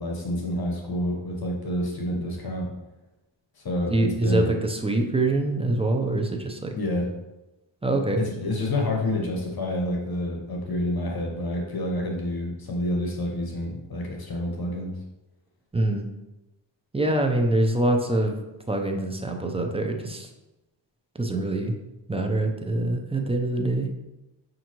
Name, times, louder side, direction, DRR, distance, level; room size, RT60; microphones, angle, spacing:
voice 1, 0.0-2.7 3.6-4.5 6.7-7.1 8.2-14.9, left 1 dB, 50° left, 0 dB, 1.0 m, -28 dB
voice 2, 3.9-6.7 7.8-8.2 15.7-16.1 16.9-18.4 18.7-20.3 21.1-21.7 22.1-23.9, right 2 dB, 15° right, 3 dB, 0.5 m, -24 dB
5.5 x 2.6 x 2.9 m, 0.98 s
cardioid pair, 70°, 46 cm